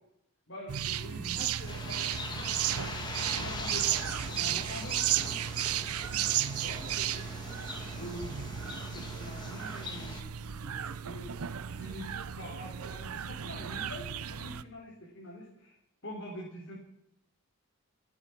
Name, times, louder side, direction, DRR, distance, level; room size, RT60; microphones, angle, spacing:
voice 1, 0.5-2.9 3.3-5.3 6.3-6.4 6.6-7.3 7.9-12.1 12.4-15.7 16.0-16.8, equal, 55° left, -4 dB, 3.9 m, -45 dB
sound 1, 0.7-14.6, right 10 dB, 80° right, 0.6 m, -34 dB
Bird, 1.7-10.2, left 3 dB, 20° left, 1.7 m, -42 dB
25.5 x 8.8 x 6.0 m, 0.82 s
head